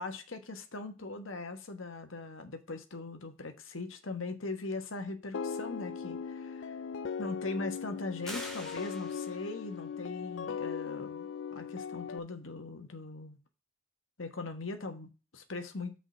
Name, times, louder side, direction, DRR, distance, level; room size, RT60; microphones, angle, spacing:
voice 1, 0.0-6.8 7.2-13.4 14.2-16.0, left 3 dB, 80° left, 1.3 m, -40 dB
sound 1, 5.3-12.2, left 6 dB, 65° left, 0.4 m, -39 dB
sound 2, 8.2-9.6, equal, ahead, 2.2 m, -44 dB
6.5 x 5.0 x 5.6 m
head